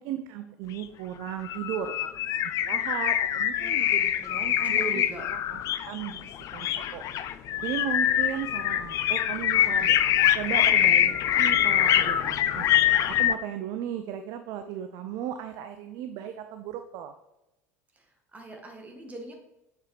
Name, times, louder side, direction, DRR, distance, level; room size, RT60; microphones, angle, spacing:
voice 1, 0.0-2.0 2.3-5.0 5.3-5.6 5.9-6.7 6.9-7.0 7.6-10.0 10.3-12.7 13.1-17.1, right 10 dB, 50° right, 8 dB, 0.4 m, -36 dB
sound 1, 0.8-0.9 1.3-13.3, left 11 dB, 40° left, 0.3 m, -24 dB
voice 2, 3.6-5.2 17.9-18.0 18.3-19.3, right 2 dB, 15° right, 2 dB, 1.4 m, -40 dB
6.8 x 4.6 x 3.3 m, 0.92 s
figure-of-eight pair, 70°, 9 cm